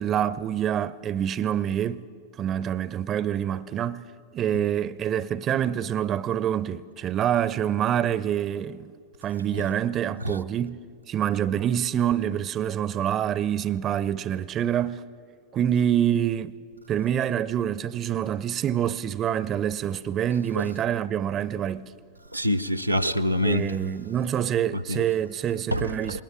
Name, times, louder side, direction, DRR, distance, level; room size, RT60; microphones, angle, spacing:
voice 1, 0.0-2.1 2.4-4.0 4.3-8.9 9.2-10.8 11.1-15.0 15.5-16.5 16.9-21.9 23.4-26.2, right 10 dB, 30° right, 0.5 m, -26 dB
voice 2, 22.3-23.7 24.9-25.0 25.7-26.2, equal, 90° right, 0.5 m, -25 dB
20.5 x 19.0 x 7.2 m
figure-of-eight pair, 90°, 0 cm